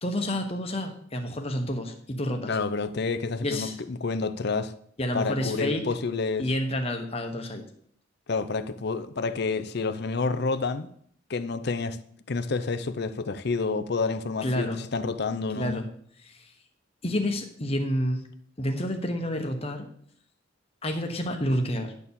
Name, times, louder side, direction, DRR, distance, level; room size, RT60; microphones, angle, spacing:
voice 1, 0.0-2.6 3.4-3.7 5.0-5.9 6.4-7.7 14.4-14.8 15.5-15.9 16.2-16.5 17.0-18.2 18.6-19.9 20.8-21.9, left 1 dB, 30° left, 1.1 m, -29 dB
voice 2, 2.5-4.7 5.1-6.5 8.3-10.9 11.3-12.0 12.3-15.8, left 4 dB, 55° left, 0.6 m, -29 dB
10.5 x 4.3 x 7.1 m
head